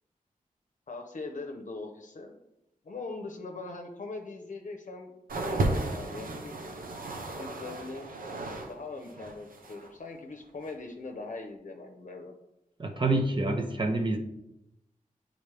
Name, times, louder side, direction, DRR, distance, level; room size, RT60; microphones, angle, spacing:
voice 1, 0.9-2.4 2.8-5.1 5.4-6.5 7.4-12.3, left 3 dB, 60° left, 3 dB, 0.7 m, -41 dB
sound 1, 5.3-8.7 9.0-9.9 10.6-10.7, right 2 dB, 90° right, 0.8 m, -34 dB
voice 2, 12.8-14.2, right 2 dB, 35° right, 4 dB, 0.7 m, -27 dB
8.6 x 4.0 x 3.3 m, 0.86 s
wide cardioid pair, 120°, 14 cm